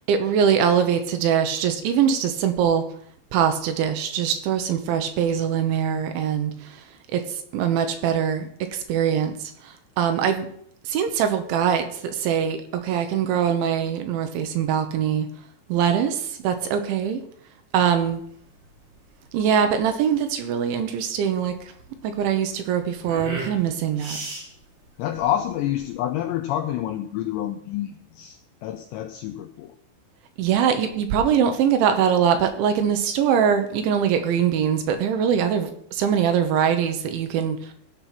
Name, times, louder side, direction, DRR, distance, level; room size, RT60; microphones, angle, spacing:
voice 1, 0.0-2.8 3.3-6.8 7.1-10.5 10.8-15.3 15.7-17.2 17.7-18.2 19.3-21.7 22.0-24.2 30.4-37.7, right 8 dB, 75° right, 3.2 m, -23 dB
sound 1, 18.0-26.0, right 2 dB, 45° right, 6.8 m, -39 dB
voice 2, 25.0-29.7, left 12 dB, 90° left, 2.5 m, -28 dB
15.0 x 6.1 x 5.9 m
omnidirectional pair, 5.8 m